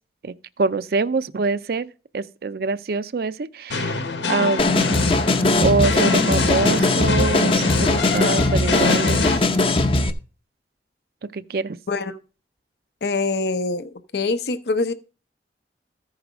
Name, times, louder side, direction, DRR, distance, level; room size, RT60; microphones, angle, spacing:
voice 1, 0.2-1.9 2.1-4.9 5.6-9.3 11.3-11.8, right 3 dB, 55° right, 0.4 m, -25 dB
sound 1, 3.7-9.4, left 4 dB, 80° left, 1.1 m, -26 dB
sound 2, 4.6-10.1, left 2 dB, 30° left, 0.7 m, -19 dB
voice 2, 13.0-14.9, left 3 dB, 65° left, 0.7 m, -24 dB
14.5 x 4.8 x 5.0 m
head